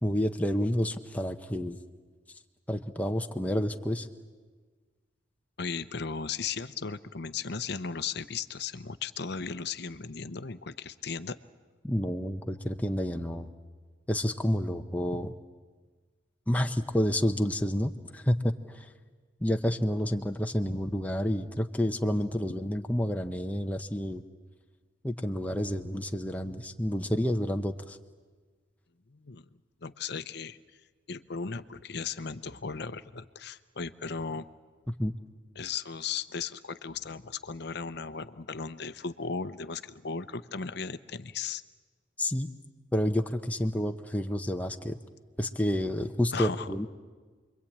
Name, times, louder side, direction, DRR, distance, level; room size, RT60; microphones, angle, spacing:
voice 1, 0.0-1.8 2.7-4.1 11.8-13.5 14.1-15.3 16.5-18.9 19.4-24.2 25.0-28.0 35.0-35.1 42.2-42.5 42.9-45.0 45.4-46.9, equal, 10° left, 5 dB, 0.8 m, -29 dB
voice 2, 5.6-11.4 15.1-15.3 20.7-20.8 29.1-29.5 29.8-30.6 31.1-34.5 35.6-41.6 46.3-46.7, left 5 dB, 60° left, 13 dB, 0.8 m, -36 dB
28.5 x 22.5 x 8.7 m, 1.5 s
head